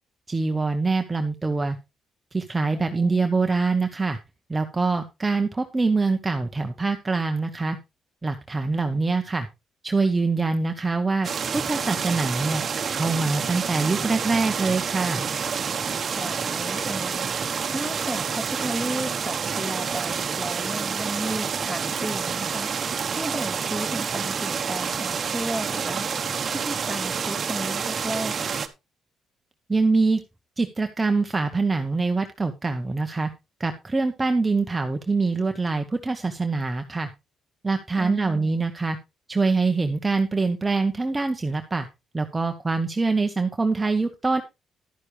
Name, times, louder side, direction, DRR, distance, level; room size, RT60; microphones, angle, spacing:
voice 1, 0.3-1.8 2.3-4.2 4.5-7.8 8.2-9.5 9.8-12.6 12.9-15.3 29.7-30.2 30.6-33.3 33.6-37.1 37.6-39.0 39.3-41.9 42.1-44.4, right 3 dB, 20° right, 0.9 m, -24 dB
voice 2, 2.7-3.3 16.1-28.5 38.0-38.5, right 1 dB, 5° left, 2.1 m, -34 dB
sound 1, 11.2-28.7, right 6 dB, 45° right, 1.1 m, -28 dB
11.5 x 9.8 x 3.3 m
cardioid pair, 90°, 0 cm